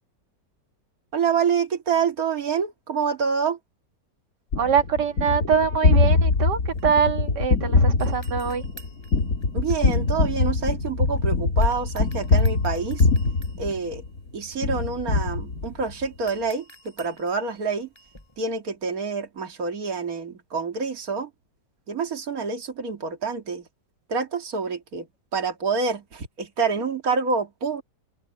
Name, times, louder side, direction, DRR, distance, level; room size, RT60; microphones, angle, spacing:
voice 1, 1.1-3.6 9.5-13.1 13.6-14.0 14.3-17.9 18.4-21.3 21.9-23.7 24.1-25.1 25.3-27.8, right 5 dB, 55° right, 2.7 m, -27 dB
Gunshot gunfire, 4.5-14.2 14.6-16.0, left 3 dB, 55° left, 2.0 m, -23 dB
voice 2, 4.6-8.6, right 7 dB, 75° right, 2.2 m, -23 dB
sound 1, 6.2-7.7 8.0-11.2 11.6-18.4, right 2 dB, 15° left, 4.7 m, -52 dB
omnidirectional pair, 1.8 m